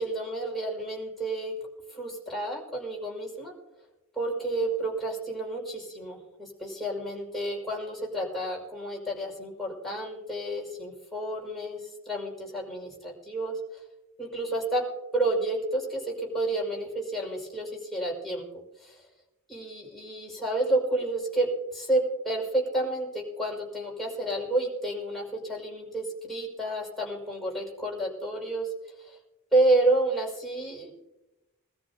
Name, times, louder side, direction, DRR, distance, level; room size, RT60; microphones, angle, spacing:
voice 1, 0.0-1.5 1.9-3.5 4.2-11.8 12.1-13.6 14.2-14.9 15.1-18.4 18.8-18.9 19.5-28.7 29.5-30.9, right 2 dB, ahead, -4 dB, 5.5 m, -30 dB
23.5 x 14.0 x 2.8 m, 0.96 s
head